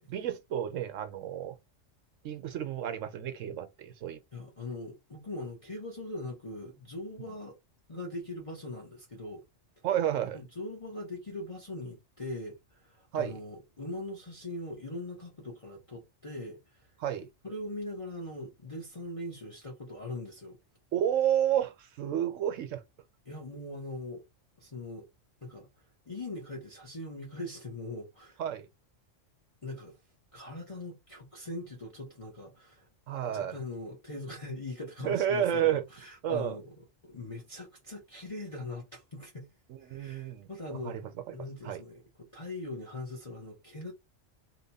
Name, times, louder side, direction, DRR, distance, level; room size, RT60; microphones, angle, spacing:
voice 1, 0.1-1.6 2.2-4.2 7.2-7.3 9.8-10.4 13.1-13.4 17.0-17.3 20.9-22.8 28.4-28.7 33.1-33.6 35.0-35.8 36.2-36.6 39.7-41.0 41.3-41.4 41.6-41.8, right 10 dB, 80° right, 1.1 m, -31 dB
voice 2, 4.3-7.6 7.9-9.4 10.3-16.9 17.4-20.6 23.3-24.2 24.6-25.1 25.4-25.7 26.1-28.4 29.6-30.0 30.3-32.9 33.2-36.7 37.0-39.5 39.8-41.0 41.3-43.9, left 2 dB, 30° left, 0.9 m, -41 dB
2.9 x 2.2 x 4.0 m
omnidirectional pair, 1.3 m